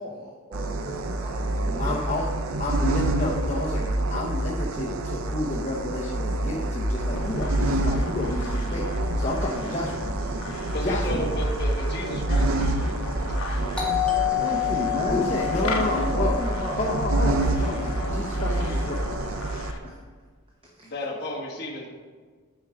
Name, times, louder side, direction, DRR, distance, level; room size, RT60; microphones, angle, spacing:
voice 1, 0.0-2.3 10.6-10.9 14.4-15.3 15.6-16.8 19.8-20.0 20.8-20.9, equal, 25° right, -3 dB, 0.8 m, -34 dB
sound 1, 0.5-19.7, right 1 dB, 75° right, 0.5 m, -27 dB
voice 2, 1.8-2.3 2.6-10.3 10.8-11.2 15.1-16.4 16.8-19.0, left 2 dB, 35° left, -5 dB, 0.8 m, -30 dB
sound 2, 7.1-19.8, left 2 dB, 70° left, 1.0 m, -37 dB
voice 3, 10.7-13.8 20.8-21.9, left 1 dB, 50° left, -4 dB, 1.5 m, -34 dB
Doorbell, 13.7-18.3, left 15 dB, 5° left, 1.4 m, -29 dB
9.0 x 4.5 x 5.0 m, 1.5 s
head